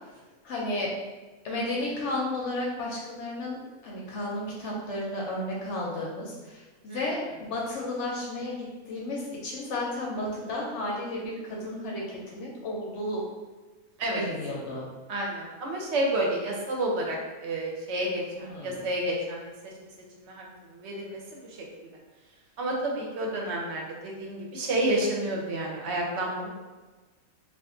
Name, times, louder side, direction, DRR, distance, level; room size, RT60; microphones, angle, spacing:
voice 1, 0.4-0.9 1.4-12.0 12.3-13.2 14.1-14.9 18.4-18.8, left 1 dB, 65° left, -3 dB, 0.8 m, -33 dB
voice 2, 15.1-19.5 20.2-20.4 20.7-21.4 22.6-26.5, right 1 dB, 60° right, -1 dB, 0.8 m, -30 dB
2.5 x 2.4 x 3.6 m, 1.3 s
omnidirectional pair, 1.6 m